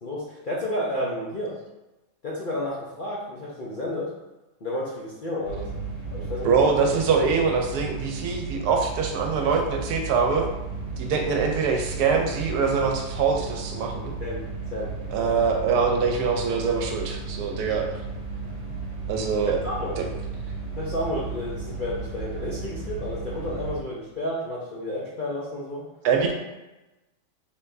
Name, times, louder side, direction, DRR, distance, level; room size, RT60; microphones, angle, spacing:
voice 1, 0.0-1.6 2.2-4.1 4.6-5.7 6.1-6.5 14.2-14.4 14.7-15.3 19.6-20.0 20.8-25.8, left 1 dB, 50° left, -6 dB, 0.6 m, -31 dB
sound 1, 5.4-23.8, right 4 dB, 45° right, 1.1 m, -34 dB
voice 2, 6.4-10.5 11.0-14.1 15.1-18.0 19.1-19.6 20.0-20.1 26.0-26.3, right 5 dB, 80° right, 3 dB, 1.2 m, -24 dB
4.5 x 3.5 x 2.6 m, 1.0 s
omnidirectional pair, 1.7 m